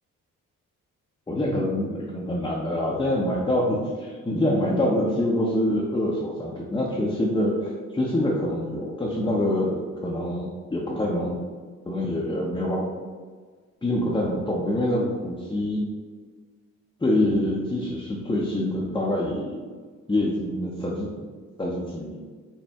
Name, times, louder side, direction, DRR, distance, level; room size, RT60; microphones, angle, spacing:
voice 1, 1.3-11.4 11.9-12.9 13.8-15.9 17.0-19.6 20.1-21.1 21.6-22.2, left 1 dB, 15° left, -4 dB, 0.7 m, -25 dB
4.4 x 2.1 x 3.4 m, 1.5 s
supercardioid pair, 55°, 35 cm